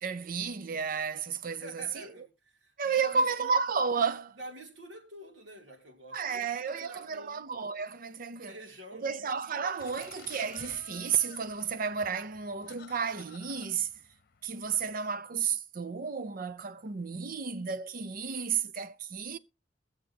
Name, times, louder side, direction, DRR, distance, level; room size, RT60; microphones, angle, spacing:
voice 1, 0.0-1.8 2.8-4.4 6.1-8.6 8.9-13.9 14.4-19.4, right 6 dB, 50° right, 0.6 m, -32 dB
voice 2, 1.6-3.5 4.3-7.5 8.5-9.2 9.5-9.9, right 1 dB, 80° right, 3.0 m, -48 dB
sound 1, 9.8-15.0, left 6 dB, 55° left, 0.9 m, -53 dB
21.5 x 7.3 x 2.8 m
head